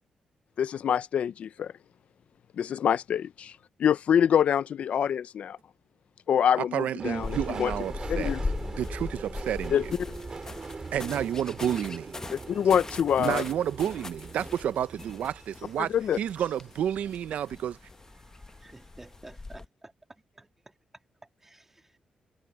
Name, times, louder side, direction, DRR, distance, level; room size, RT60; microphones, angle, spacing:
voice 1, 0.6-1.7 2.6-3.5 3.8-5.6 6.3-7.7 8.1-8.4 9.7-9.8 12.3-13.4 15.8-16.2, left 8 dB, 60° left, 0.4 m, -25 dB
voice 2, 6.6-8.3 8.8-9.9 10.9-12.1 13.2-17.8, right 10 dB, 75° right, 0.6 m, -30 dB
Subway metro underground, 7.0-17.7 18.1-18.8 19.1-19.2, right 4 dB, 30° right, 3.5 m, -42 dB
sound 1, 7.2-19.7, left 3 dB, 25° left, 0.8 m, -39 dB
voice 3, 18.6-19.9 20.3-20.8 21.4-22.0, right 2 dB, 15° right, 2.3 m, -51 dB
cardioid pair, 125°, 2 cm